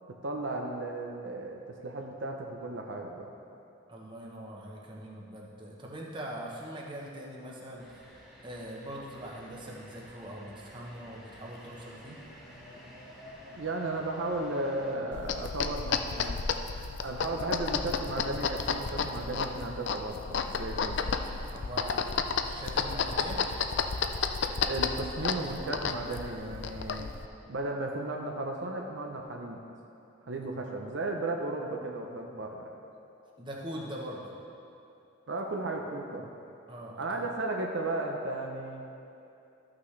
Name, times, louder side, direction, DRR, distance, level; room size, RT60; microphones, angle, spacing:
voice 1, 0.1-3.3 13.6-16.4 17.0-21.0 24.6-27.1 27.5-29.6 30.3-32.7 35.3-36.3 37.0-38.8, right 2 dB, 65° right, 1 dB, 0.6 m, -35 dB
voice 2, 3.9-8.0 8.4-12.2 21.5-23.4 33.4-34.3 36.7-37.3, right 1 dB, 25° right, -3 dB, 0.9 m, -42 dB
sound 1, 7.8-15.0, equal, 5° right, 1.6 m, -51 dB
sound 2, 15.1-27.3, left 5 dB, 60° left, 0.4 m, -32 dB
13.0 x 6.0 x 3.2 m, 2.7 s
head